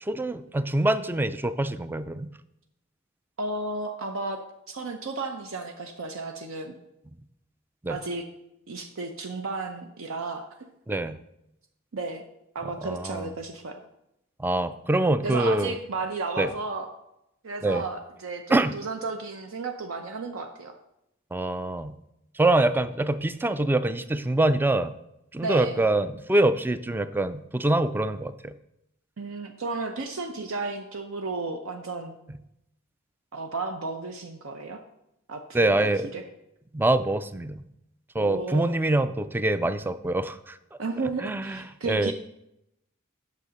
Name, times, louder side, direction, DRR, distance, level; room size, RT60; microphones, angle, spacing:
voice 1, 0.0-2.3 7.8-8.0 10.9-11.2 12.8-13.3 14.4-15.8 16.4-16.5 17.6-17.8 18.5-18.7 21.3-22.0 22.4-24.9 25.3-28.5 35.5-36.1 36.7-37.6 38.1-40.6 41.2-42.1, right 2 dB, 10° right, 13 dB, 0.3 m, -25 dB
voice 2, 3.4-4.4 4.7-6.7 7.9-8.2 8.7-10.4 11.9-12.2 12.5-13.8 15.2-16.9 17.4-20.7 25.4-25.8 29.2-32.2 33.3-34.8 35.3-36.2 38.2-38.7 40.8-42.1, right 3 dB, 65° right, 5 dB, 0.7 m, -33 dB
8.3 x 6.4 x 5.1 m, 0.84 s
head